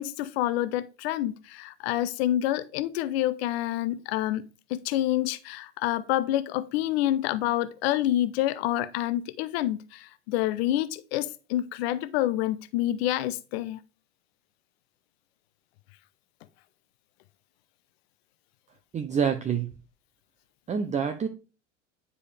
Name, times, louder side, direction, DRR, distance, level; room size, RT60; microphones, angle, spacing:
voice 1, 0.0-4.4 4.7-13.8, left 13 dB, 60° left, 0.8 m, -28 dB
voice 2, 18.9-19.7 20.7-21.3, right 7 dB, 20° right, 0.7 m, -27 dB
9.7 x 4.6 x 3.5 m
hypercardioid pair, 85°, 36 cm